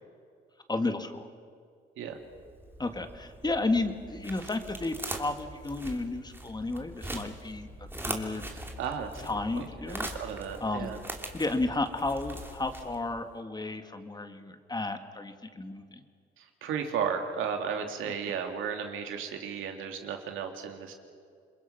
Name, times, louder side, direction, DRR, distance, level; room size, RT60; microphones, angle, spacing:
voice 1, 0.7-1.3 2.8-8.5 9.2-10.1 10.6-10.9 11.3-16.0, left 2 dB, 20° left, 7 dB, 2.0 m, -33 dB
sound 1, 2.2-13.3, right 1 dB, 10° right, 2.9 m, -42 dB
voice 2, 8.5-9.3 9.5-11.0 16.4-20.9, right 7 dB, 85° right, 4 dB, 2.7 m, -34 dB
28.0 x 22.0 x 5.9 m, 2.2 s
cardioid pair, 90°, 20 cm